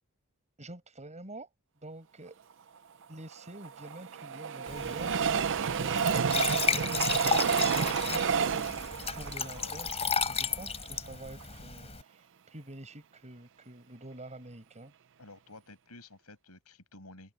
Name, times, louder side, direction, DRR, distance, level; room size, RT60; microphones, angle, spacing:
voice 1, 0.6-1.5 1.8-2.4 3.1-14.9, right 1 dB, 30° right, 6.8 m, -47 dB
Train, 3.3-10.6 11.1-11.2 11.4-11.5, right 6 dB, 60° right, 0.6 m, -30 dB
Glass / Trickle dribble / Fill (with liquid), 4.7-12.0, left 6 dB, 30° left, 3.6 m, -34 dB
voice 2, 9.4-9.8 15.2-17.3, left 2 dB, 85° left, 6.5 m, -51 dB
head